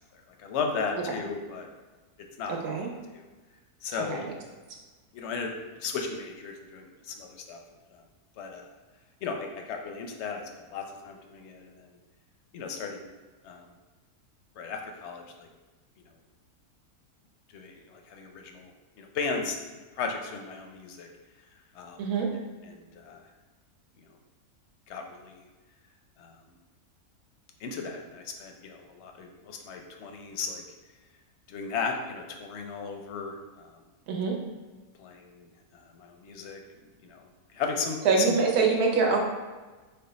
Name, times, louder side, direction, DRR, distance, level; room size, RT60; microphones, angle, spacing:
voice 1, 0.4-1.7 2.4-2.8 3.1-3.2 3.8-4.2 5.1-5.5 5.8-7.6 7.9-8.0 8.4-8.7 9.2-11.9 12.5-13.0 13.4-13.7 14.6-15.5 17.5-18.7 19.0-19.6 20.0-21.1 21.8-22.0 22.6-23.2 24.9-25.4 26.2-26.3 27.6-30.6 31.5-33.7 35.0-35.5 35.9-36.6 37.0-37.2 37.5-38.4, left 5 dB, 65° left, 3 dB, 0.7 m, -35 dB
voice 2, 2.5-2.9 4.1-4.3 22.0-22.3 34.1-34.4 38.0-39.2, right 4 dB, 85° right, 0 dB, 1.3 m, -25 dB
5.3 x 2.2 x 3.9 m, 1.3 s
omnidirectional pair, 1.6 m